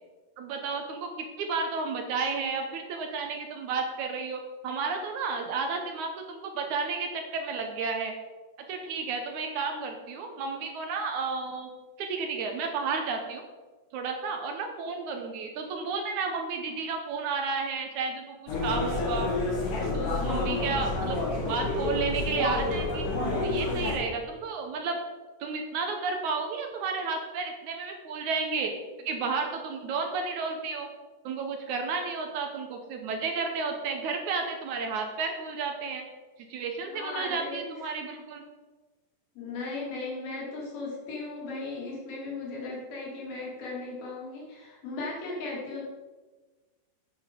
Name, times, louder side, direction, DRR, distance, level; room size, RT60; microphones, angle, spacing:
voice 1, 0.4-8.1 8.7-11.7 12.0-13.4 13.9-19.3 19.9-21.2 21.5-23.1 23.4-25.0 25.4-28.7 29.0-30.9 31.2-36.0 36.5-38.4, right 4 dB, 70° right, 4 dB, 2.1 m, -32 dB
sound 1, 18.5-24.0, left 2 dB, 65° left, 3.5 m, -29 dB
voice 2, 20.2-21.1 36.8-37.6 39.4-45.8, left 3 dB, 90° left, -4 dB, 4.4 m, -37 dB
8.9 x 7.9 x 5.2 m, 1.3 s
omnidirectional pair, 4.0 m